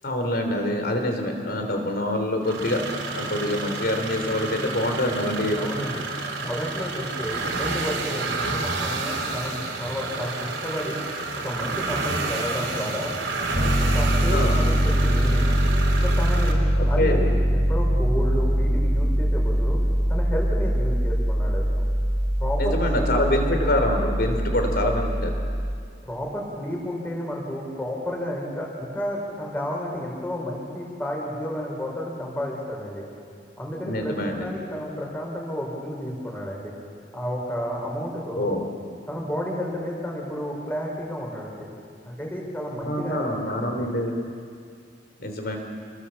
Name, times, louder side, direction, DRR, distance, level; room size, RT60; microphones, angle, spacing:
voice 1, 0.0-2.8 3.1-5.6 14.3-14.6 16.8-17.3 22.6-25.3 33.8-34.5 38.4-38.7 42.8-44.2 45.2-45.6, left 1 dB, 60° left, 4 dB, 3.5 m, -25 dB
sound 1, 2.4-16.5, right 3 dB, 85° right, 3.6 m, -30 dB
voice 2, 5.6-6.1 6.4-11.0 11.4-13.2 13.6-15.6 15.9-19.8 20.1-21.8 22.4-23.5 26.0-33.0 33.6-36.7 37.1-38.5 39.1-41.7 42.0-43.9, equal, 10° left, -2 dB, 5.0 m, -31 dB
Piano, 13.5-25.7, equal, 35° right, 1.5 m, -22 dB
28.5 x 21.0 x 7.3 m, 2.3 s
head